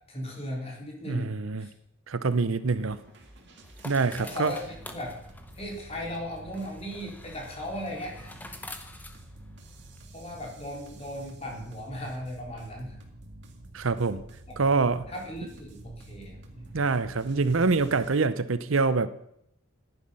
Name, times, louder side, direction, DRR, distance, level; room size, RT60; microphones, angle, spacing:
voice 1, 0.1-1.7 4.2-4.6 4.9-5.1 5.6-8.3 10.1-13.0 15.1-16.7, equal, 30° left, -1 dB, 3.7 m, -37 dB
voice 2, 1.1-1.7 2.1-3.0 3.8-4.5 13.7-14.2 14.6-15.1 16.7-19.1, right 4 dB, 75° right, 14 dB, 0.7 m, -25 dB
sound 1, 2.3-10.0, left 2 dB, 10° left, 1.0 m, -48 dB
sound 2, 2.7-18.2, right 1 dB, 55° right, 2.1 m, -49 dB
14.5 x 10.5 x 5.6 m, 0.75 s
head